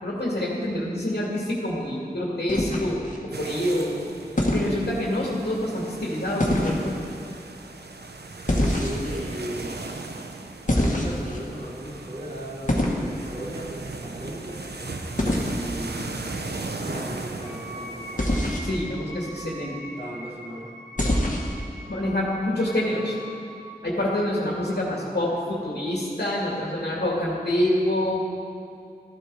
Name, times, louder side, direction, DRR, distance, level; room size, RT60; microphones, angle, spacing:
voice 1, 0.0-4.0 4.5-7.0 18.6-19.8 21.9-23.1 23.8-28.2, left 1 dB, 85° left, -4 dB, 2.3 m, -26 dB
sound 1, 2.5-3.2 4.4-4.7 6.4-6.8 8.5-9.2 10.7-11.4 12.7-13.0 15.2-15.5 18.2-18.7 21.0-21.5, left 1 dB, 50° left, 2.1 m, -24 dB
sound 2, 3.3-18.6, right 3 dB, 85° right, 0.8 m, -37 dB
voice 2, 8.6-10.0 10.6-14.7 15.4-18.5 20.0-20.7, equal, 40° right, -8 dB, 3.7 m, -37 dB
Wind instrument woodwind instrument, 17.4-23.7, equal, 15° left, 3.7 m, -42 dB
13.5 x 12.0 x 4.9 m, 2.5 s
wide cardioid pair, 45°, 17 cm